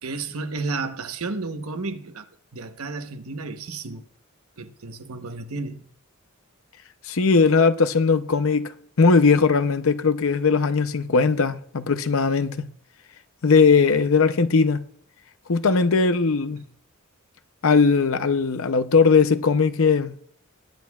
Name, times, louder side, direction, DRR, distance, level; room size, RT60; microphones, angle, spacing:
voice 1, 0.0-2.3 2.5-4.0 4.6-5.9, right 3 dB, 85° right, 1.0 m, -32 dB
voice 2, 7.1-8.7 9.0-12.7 13.4-14.8 15.5-16.6 17.6-20.1, left 4 dB, 70° left, 0.7 m, -19 dB
21.0 x 9.4 x 2.4 m
head